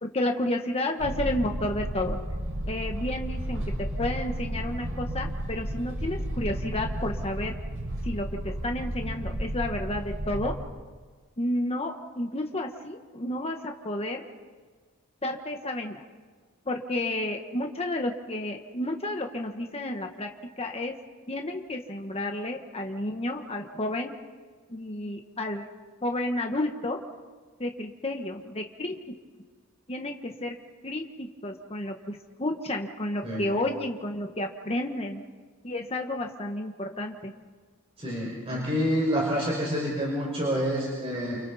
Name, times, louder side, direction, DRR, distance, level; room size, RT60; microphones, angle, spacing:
voice 1, 0.0-2.2 2.7-7.5 8.0-10.5 11.4-14.2 15.2-16.0 16.6-20.3 20.6-20.9 21.3-24.1 24.7-25.6 26.0-27.0 27.6-28.9 29.9-30.5 30.8-35.2 35.6-37.3, left 1 dB, 25° left, 3 dB, 1.3 m, -31 dB
sound 1, 1.0-10.5, right 1 dB, 65° right, 5.5 m, -33 dB
voice 2, 38.0-41.4, equal, 25° right, -4 dB, 5.3 m, -28 dB
29.5 x 29.0 x 4.2 m, 1.5 s
head